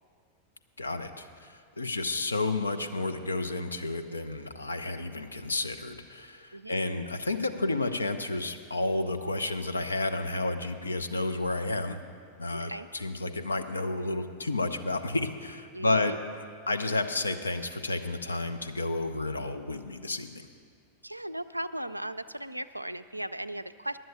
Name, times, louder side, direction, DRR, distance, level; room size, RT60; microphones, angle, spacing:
voice 1, 0.8-12.0 12.4-16.1 16.7-20.5, left 2 dB, 80° left, 9 dB, 0.6 m, -31 dB
voice 2, 12.5-12.9 15.7-16.2 21.0-24.0, right 1 dB, 85° right, 11 dB, 0.3 m, -37 dB
11.0 x 7.6 x 8.1 m, 2.2 s
figure-of-eight pair, 90°, 0 cm